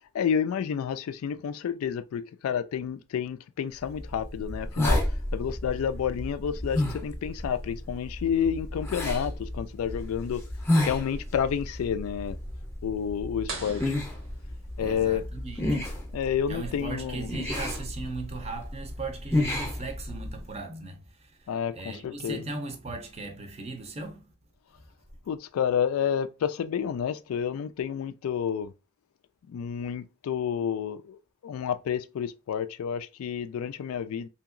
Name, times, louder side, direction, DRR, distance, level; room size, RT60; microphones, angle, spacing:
voice 1, 0.1-5.0 5.3-10.4 10.9-12.4 12.8-14.0 14.8-15.2 16.1-17.3 21.5-22.5 25.3-28.7 29.5-34.3, left 8 dB, 90° left, 0.3 m, -30 dB
sound 1, 3.9-20.5, left 1 dB, 15° left, 0.6 m, -32 dB
sound 2, 13.5-15.2, right 4 dB, 85° right, 1.1 m, -41 dB
voice 2, 14.8-15.9 16.5-24.3, right 3 dB, 30° right, 0.5 m, -38 dB
2.8 x 2.7 x 2.5 m
head